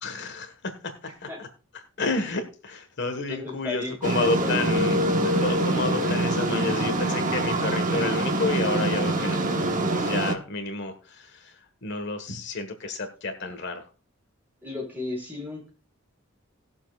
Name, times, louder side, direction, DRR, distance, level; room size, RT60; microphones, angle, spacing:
voice 1, 0.0-0.7 1.2-1.5 2.0-9.5 9.8-13.9, left 3 dB, 60° left, 7 dB, 1.5 m, -30 dB
voice 2, 1.0-1.4 3.3-4.5 14.6-15.7, left 3 dB, 10° right, -2 dB, 5.6 m, -34 dB
sound 1, 4.0-10.3, right 1 dB, 40° right, 1.3 m, -25 dB
19.5 x 7.2 x 2.4 m, 0.35 s
head